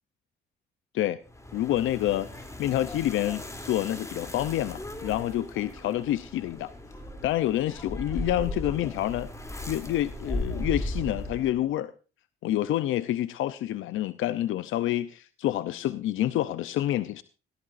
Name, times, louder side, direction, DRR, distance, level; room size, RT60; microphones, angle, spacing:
sound 1, 1.3-11.7, left 1 dB, 15° left, 3.0 m, -37 dB
voice 1, 1.5-6.7 7.2-9.3 9.7-11.9 12.4-17.2, left 13 dB, 80° left, 14 dB, 0.7 m, -28 dB
17.5 x 14.0 x 2.6 m, 0.35 s
cardioid pair, 90°, 20 cm